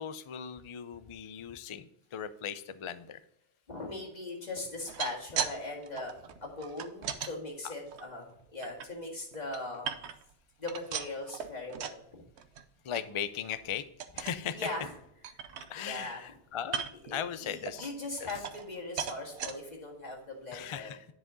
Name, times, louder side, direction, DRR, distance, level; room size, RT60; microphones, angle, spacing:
voice 1, 0.0-3.2 12.8-13.8 14.1-14.6 15.7-17.9 18.2-18.3 20.5-21.0, left 8 dB, 55° left, 12 dB, 0.3 m, -38 dB
voice 2, 3.7-9.9 10.6-12.2 14.5-14.9 15.8-16.2 17.0-20.9, left 2 dB, 40° left, -2 dB, 2.1 m, -40 dB
sound 1, 4.7-5.6 5.8-7.3 7.9-8.9 9.3-10.3 10.6-12.0 12.4-12.6 12.9-13.0 13.4-13.6 14.0-14.4 14.9-15.0 15.2-16.0 16.6-17.1 17.7-18.7 19.0-19.5 20.1-20.2 20.5-20.6, right 8 dB, 75° right, 0.9 m, -38 dB
10.0 x 5.0 x 3.8 m, 0.75 s
omnidirectional pair, 1.1 m